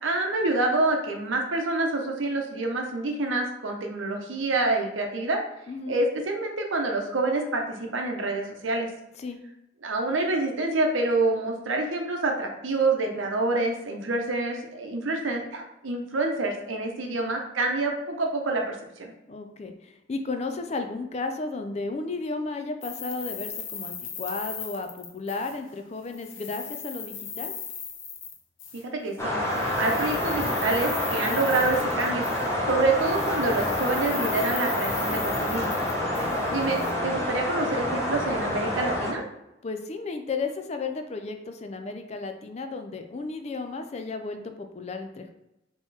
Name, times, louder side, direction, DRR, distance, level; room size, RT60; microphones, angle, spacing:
voice 1, 0.0-5.4 5.9-8.9 9.8-19.1 28.9-29.4 29.8-32.2 32.7-35.7 36.5-39.2, right 2 dB, 85° right, 2 dB, 0.8 m, -27 dB
voice 2, 19.3-27.5 35.9-36.4 39.6-45.3, left 3 dB, 35° left, 6 dB, 0.4 m, -34 dB
sound 1, 22.8-25.8 26.1-28.9 29.4-32.7 33.0-36.9, left 7 dB, 80° left, 0.7 m, -38 dB
sound 2, 29.2-39.1, left 1 dB, 15° left, 0.8 m, -28 dB
3.8 x 2.9 x 4.1 m, 0.90 s
head